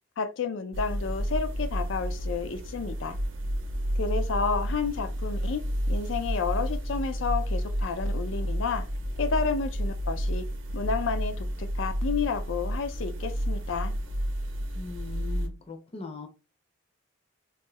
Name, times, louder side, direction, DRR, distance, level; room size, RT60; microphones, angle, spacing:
voice 1, 0.2-3.2 4.0-8.9 9.2-10.5 10.7-13.9, left 5 dB, 80° left, 0.4 m, -31 dB
sound 1, 0.7-15.5, equal, 80° right, 0.6 m, -30 dB
voice 2, 14.7-16.3, left 3 dB, 30° left, 0.5 m, -40 dB
2.6 x 2.4 x 3.0 m
head